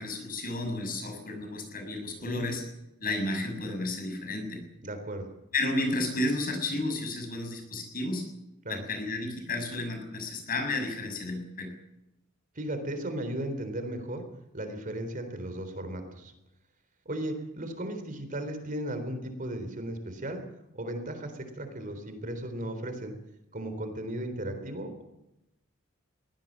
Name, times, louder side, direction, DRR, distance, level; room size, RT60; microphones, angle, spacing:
voice 1, 0.0-2.6 3.0-4.6 5.5-8.2 8.7-11.7, left 2 dB, 45° left, 5 dB, 6.7 m, -32 dB
voice 2, 4.8-5.3 8.6-8.8 12.6-14.2 14.5-16.3 17.1-20.4 20.7-23.1 23.5-25.0, right 1 dB, 40° right, 8 dB, 3.8 m, -36 dB
22.5 x 17.5 x 7.5 m, 0.89 s
head